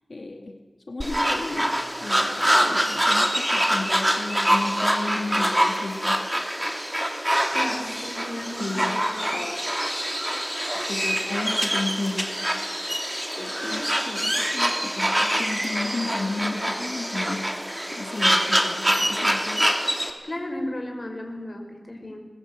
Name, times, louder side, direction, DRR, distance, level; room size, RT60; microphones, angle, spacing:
voice 1, 0.1-0.6 0.9-6.3 7.8-8.1 8.6-9.0 9.3-9.6 10.9-12.3 13.3-17.6 17.9-19.7, left 2 dB, 70° left, 4 dB, 2.0 m, -33 dB
sound 1, 1.0-20.1, equal, 15° right, 3.0 m, -25 dB
voice 2, 7.5-8.8 9.1-9.3 13.7-13.8 20.2-22.2, left 1 dB, 40° left, 3 dB, 5.2 m, -34 dB
22.0 x 21.0 x 8.0 m, 1.4 s
wide cardioid pair, 55°, 0 cm